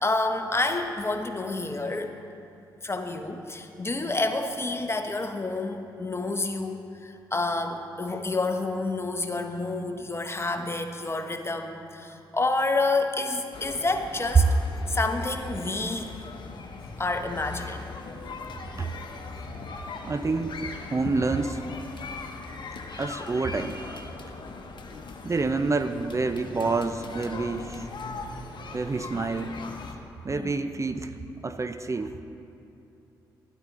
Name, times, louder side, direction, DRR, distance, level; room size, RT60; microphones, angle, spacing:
voice 1, 0.0-2.2 2.8-14.5 14.9-16.1 17.0-17.8 30.3-30.5, left 2 dB, 25° left, 6 dB, 1.1 m, -29 dB
sound 1, 13.5-29.9, left 3 dB, 55° left, 1.2 m, -39 dB
voice 2, 20.0-21.6 22.9-24.2 25.2-27.9 28.7-29.5 30.2-31.2 31.4-32.2, right 4 dB, 30° right, 9 dB, 0.6 m, -27 dB
12.0 x 11.5 x 3.8 m, 2.8 s
hypercardioid pair, 40°, 10 cm